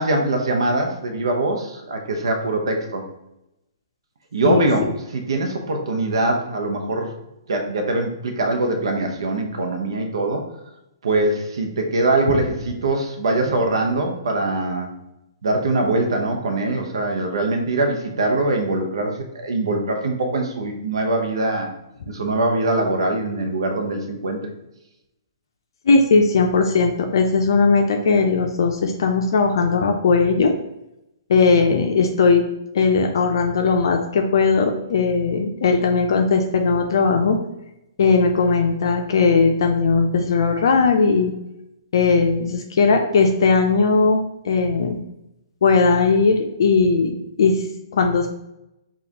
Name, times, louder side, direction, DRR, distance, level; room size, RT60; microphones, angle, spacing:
voice 1, 0.0-3.0 4.3-7.1 7.5-10.4 11.0-14.9 15.4-21.7 22.1-24.5, right 2 dB, 75° right, 3 dB, 0.7 m, -22 dB
voice 2, 25.9-30.5 31.3-32.4 32.7-37.4 38.0-41.3 41.9-45.0 45.6-47.6 47.9-48.3, left 4 dB, 65° left, 3 dB, 0.5 m, -18 dB
5.0 x 2.4 x 2.8 m, 0.88 s
hypercardioid pair, 140°, 2 cm